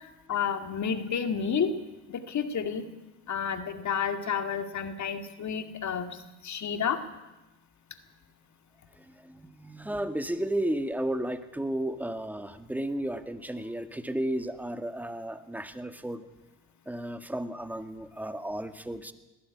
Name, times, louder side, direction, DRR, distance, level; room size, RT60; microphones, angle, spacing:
voice 1, 0.3-1.7 2.1-2.9 3.3-6.2 6.4-7.0, left 7 dB, 45° left, 8 dB, 2.3 m, -30 dB
voice 2, 9.0-16.3 16.9-19.1, right 1 dB, 5° right, 9 dB, 1.8 m, -33 dB
20.0 x 14.0 x 9.9 m, 1.0 s
supercardioid pair, 75°, 39 cm